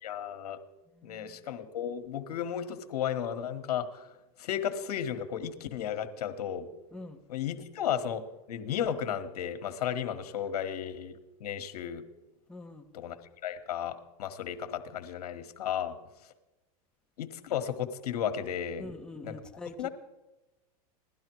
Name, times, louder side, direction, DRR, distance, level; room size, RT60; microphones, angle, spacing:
voice 1, 0.0-0.6 1.0-4.1 4.4-6.7 7.3-8.2 8.5-12.0 12.9-13.2 13.4-16.0 17.2-18.9 19.2-19.4 19.8-19.9, left 9 dB, 80° left, 8 dB, 1.5 m, -34 dB
voice 2, 0.9-1.4 6.9-7.2 12.5-12.9 18.8-19.9, left 2 dB, 5° left, 3 dB, 1.3 m, -44 dB
17.0 x 12.5 x 4.7 m, 1.0 s
hypercardioid pair, 115°, 20 cm